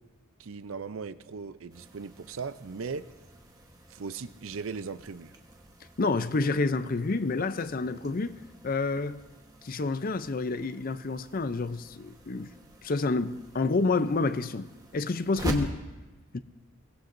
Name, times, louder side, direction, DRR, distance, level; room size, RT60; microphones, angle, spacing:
voice 1, 0.4-3.1 3.9-5.3, right 5 dB, 75° right, 0.6 m, -38 dB
sound 1, 1.7-15.7, right 1 dB, 15° right, 1.2 m, -44 dB
voice 2, 6.0-8.3 8.6-9.2 9.6-12.5 12.8-14.7 14.9-15.8 16.3-16.4, left 3 dB, 40° left, 0.5 m, -28 dB
22.5 x 17.5 x 2.6 m
head